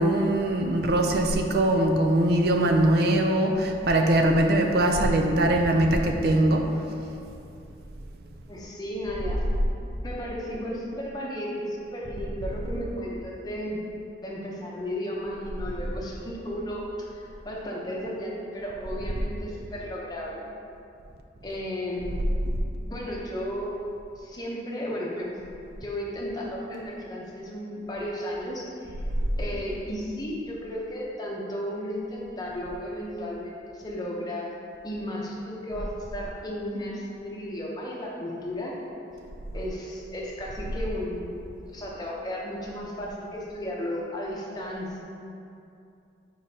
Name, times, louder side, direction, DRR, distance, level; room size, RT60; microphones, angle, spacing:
voice 1, 0.0-6.7, right 1 dB, 55° right, 3 dB, 0.4 m, -22 dB
voice 2, 8.5-9.4 10.0-13.8 14.2-20.5 21.4-22.2 22.8-23.8 24.2-25.4 25.8-29.0 29.4-34.5 34.8-38.8 39.5-41.4 41.7-45.0, equal, 20° left, -4 dB, 0.8 m, -34 dB
7.1 x 4.8 x 2.8 m, 2.6 s
head